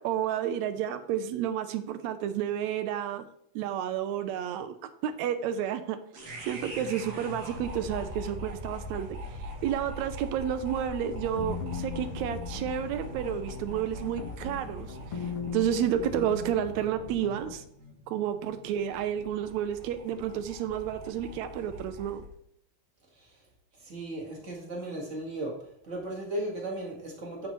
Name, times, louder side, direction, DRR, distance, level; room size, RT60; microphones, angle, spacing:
voice 1, 0.0-3.2 3.5-4.7 5.0-6.0 6.5-17.6 18.1-22.2, right 9 dB, 80° right, 11 dB, 1.8 m, -31 dB
sound 1, 6.1-22.3, left 1 dB, 60° right, 2.7 m, -42 dB
sound 2, 11.1-17.5, left 4 dB, 65° left, 1.4 m, -39 dB
voice 2, 23.8-25.5 25.8-27.5, right 1 dB, 30° right, -2 dB, 1.5 m, -36 dB
7.6 x 7.3 x 3.1 m, 0.69 s
omnidirectional pair, 3.4 m